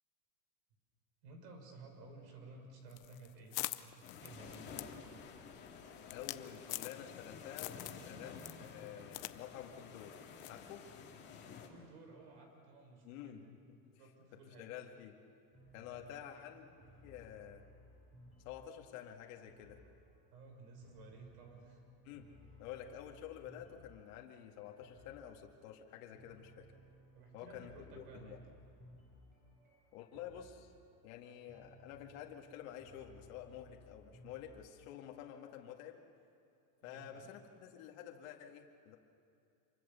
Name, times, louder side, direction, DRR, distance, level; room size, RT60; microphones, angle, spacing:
voice 1, 1.2-4.7 8.1-8.3 11.7-13.5 14.0-14.7 16.0-16.3 20.3-21.8 27.1-28.4 36.8-37.4, right 3 dB, 70° right, 4 dB, 6.2 m, -55 dB
sound 1, 2.9-7.2 7.5-8.0 8.4-9.3 9.6-9.7 10.4-10.6, left 18 dB, 35° left, 0.5 m, -44 dB
sound 2, 4.0-11.7, left 6 dB, 20° left, 2.3 m, -52 dB
voice 2, 6.1-10.2 10.5-10.9 13.0-13.4 13.7-13.8 14.3-15.1 15.7-16.8 17.0-17.6 18.4-19.8 22.1-22.3 22.6-26.7 27.3-28.4 29.9-30.7 31.0-36.0 36.8-39.0, left 10 dB, 55° left, 1 dB, 2.1 m, -50 dB
sound 3, 15.5-34.9, equal, 15° right, 7.2 m, -61 dB
27.0 x 24.0 x 7.0 m, 2.6 s
supercardioid pair, 175°, 49 cm